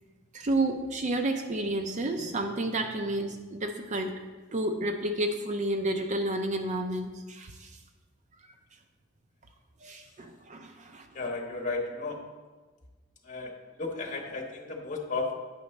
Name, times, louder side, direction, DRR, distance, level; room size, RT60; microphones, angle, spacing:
voice 1, 0.3-4.1 4.5-7.7 9.8-11.1, right 1 dB, 35° right, 5 dB, 0.5 m, -30 dB
voice 2, 11.1-12.2 13.2-15.4, left 3 dB, 40° left, 1 dB, 1.0 m, -34 dB
9.1 x 6.0 x 3.2 m, 1.3 s
head